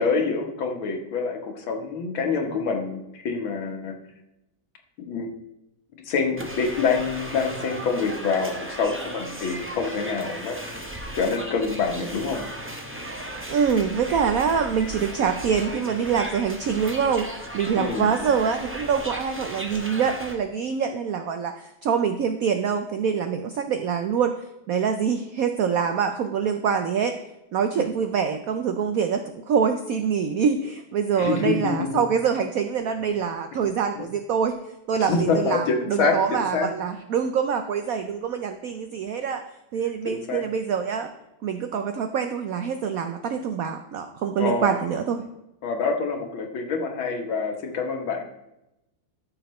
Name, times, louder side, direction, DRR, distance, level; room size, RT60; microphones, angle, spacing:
voice 1, 0.0-4.0 5.0-5.3 6.1-10.6 11.1-12.4 17.8-18.1 27.7-27.9 31.2-31.9 34.0-34.1 35.1-36.7 40.1-40.4 44.4-44.8 45.6-48.2, left 4 dB, 85° left, 4 dB, 2.0 m, -26 dB
sound 1, 6.4-20.3, right 1 dB, 15° right, 0.4 m, -36 dB
voice 2, 13.5-24.3 24.7-27.1 27.5-34.6 34.9-39.4 39.7-41.1 41.4-45.3, right 7 dB, 80° right, 7 dB, 0.7 m, -25 dB
13.5 x 6.6 x 3.1 m, 0.91 s
omnidirectional pair, 2.2 m